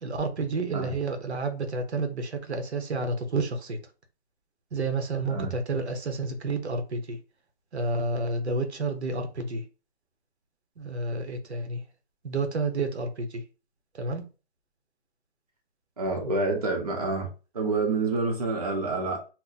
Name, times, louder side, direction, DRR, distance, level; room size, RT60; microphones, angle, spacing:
voice 1, 0.0-3.8 4.7-7.2 7.7-9.6 10.8-11.8 12.2-13.4 13.9-14.3, right 3 dB, 85° right, 1.0 m, -30 dB
voice 2, 16.0-17.3 17.5-19.2, right 3 dB, 35° right, 0.7 m, -27 dB
2.8 x 2.1 x 3.9 m
hypercardioid pair, 175°, 32 cm